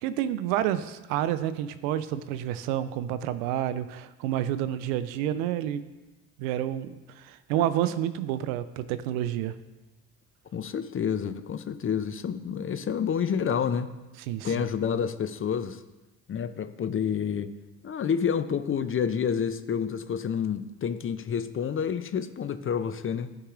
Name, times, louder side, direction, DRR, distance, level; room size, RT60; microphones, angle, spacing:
voice 1, 0.0-5.8 6.4-9.5 14.3-14.7, right 11 dB, 80° right, 13 dB, 0.5 m, -29 dB
voice 2, 10.5-13.9 14.4-15.8 16.3-17.5 17.8-23.4, left 7 dB, 30° left, 12 dB, 0.5 m, -29 dB
12.5 x 4.8 x 2.5 m, 1.1 s
hypercardioid pair, 50°, 41 cm